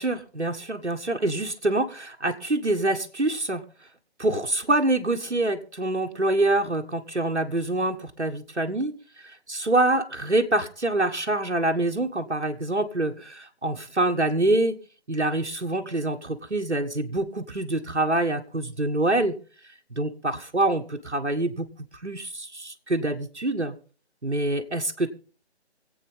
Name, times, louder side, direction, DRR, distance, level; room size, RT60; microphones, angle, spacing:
voice 1, 0.0-3.6 4.2-8.9 9.5-14.8 15.1-19.3 20.0-20.1 20.5-21.7 22.0-23.7 24.2-25.1, right 2 dB, 80° right, 3 dB, 1.6 m, -25 dB
25.0 x 8.5 x 3.6 m, 0.40 s
figure-of-eight pair, 155°, 34 cm